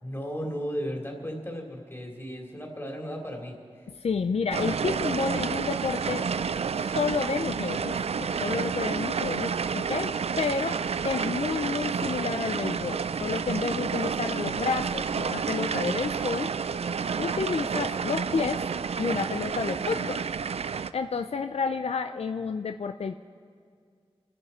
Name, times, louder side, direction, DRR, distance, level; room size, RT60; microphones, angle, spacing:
voice 1, 0.0-3.9, equal, 25° left, 0 dB, 2.9 m, -35 dB
voice 2, 4.0-6.2 6.8-16.5 17.2-18.6 19.0-20.3 20.9-23.1, left 5 dB, 80° left, 8 dB, 0.5 m, -30 dB
sound 1, 4.5-20.9, right 6 dB, 90° right, 0.4 m, -30 dB
26.0 x 11.0 x 4.4 m, 2.1 s
wide cardioid pair, 80°, 10 cm